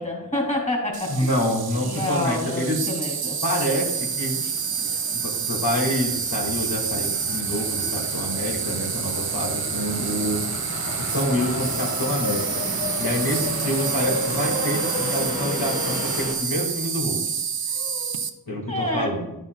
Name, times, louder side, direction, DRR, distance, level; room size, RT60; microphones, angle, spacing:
voice 1, 0.0-1.3 1.8-3.4 17.7-19.2, left 1 dB, 20° left, -1 dB, 2.7 m, -29 dB
Insect, 0.9-18.3, right 7 dB, 80° right, 0.6 m, -28 dB
voice 2, 1.1-2.8 3.4-4.4 4.8-10.4 11.0-17.2 18.5-19.3, left 1 dB, 80° left, -4 dB, 2.2 m, -27 dB
sound 1, 3.5-16.3, left 1 dB, 60° left, 1.7 m, -33 dB
11.0 x 7.0 x 2.4 m, 0.87 s
wide cardioid pair, 45°, 36 cm